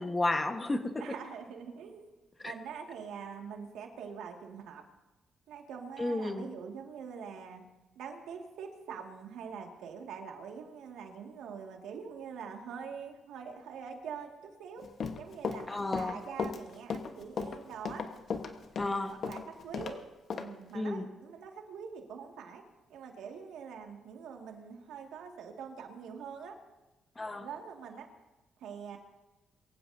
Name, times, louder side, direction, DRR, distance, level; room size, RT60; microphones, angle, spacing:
voice 1, 0.0-1.0 2.4-2.5 6.0-6.5 15.7-16.2 18.8-19.1 20.7-21.1 27.1-27.5, left 2 dB, 20° left, 7 dB, 1.3 m, -32 dB
voice 2, 1.0-2.1 2.4-4.8 5.5-7.6 8.0-14.9 15.2-18.0 19.2-20.0 20.4-22.6 22.9-26.6 27.4-28.1 28.6-29.0, right 6 dB, 85° right, 2 dB, 2.1 m, -44 dB
Run, 14.8-19.9 20.3-20.5, left 5 dB, 55° left, 1.3 m, -36 dB
23.5 x 15.5 x 2.8 m, 1.1 s
cardioid pair, 90°, 0 cm